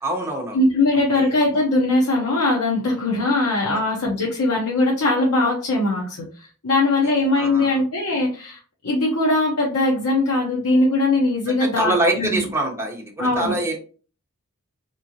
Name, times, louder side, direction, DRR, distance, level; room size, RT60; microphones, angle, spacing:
voice 1, 0.0-0.6 1.1-1.3 7.3-7.8 11.5-13.8, right 2 dB, 10° right, 0 dB, 0.9 m, -24 dB
voice 2, 0.5-8.6 8.8-12.4 13.2-13.5, left 2 dB, 75° left, -3 dB, 0.8 m, -20 dB
3.7 x 3.0 x 2.8 m, 0.39 s
head